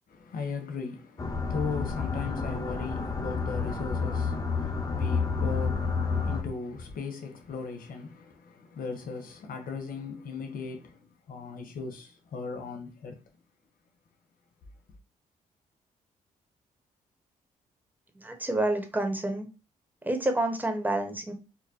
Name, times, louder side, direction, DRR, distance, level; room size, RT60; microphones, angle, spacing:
voice 1, 0.1-13.2, left 4 dB, 70° left, 1.1 m, -38 dB
sound 1, 1.2-6.4, left 5 dB, 25° left, 0.7 m, -30 dB
voice 2, 18.2-19.5 20.0-21.3, right 1 dB, 10° right, 1.1 m, -28 dB
4.2 x 2.5 x 2.8 m
cardioid pair, 70°, 15 cm